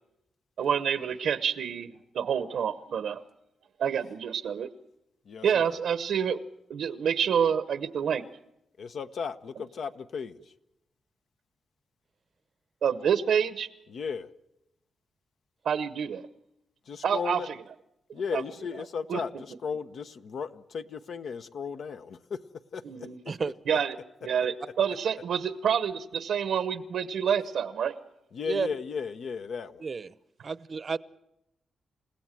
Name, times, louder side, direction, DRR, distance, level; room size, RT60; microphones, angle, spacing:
voice 1, 0.6-3.2 3.8-4.7 5.4-6.4 6.7-8.2 12.8-13.7 15.6-16.3 17.0-17.6 18.3-18.4 19.1-19.2 22.8-23.2 23.7-24.0 24.2-28.0, right 8 dB, 85° right, 13 dB, 1.0 m, -28 dB
voice 2, 5.2-5.8 8.8-10.5 13.9-14.3 16.9-17.5 18.1-22.4 22.7-23.1 28.3-29.8, left 6 dB, 70° left, 10 dB, 1.0 m, -35 dB
voice 3, 29.8-30.1 30.4-31.0, right 5 dB, 45° right, 17 dB, 0.7 m, -31 dB
28.5 x 16.5 x 7.6 m, 0.87 s
cardioid pair, 105°, 0 cm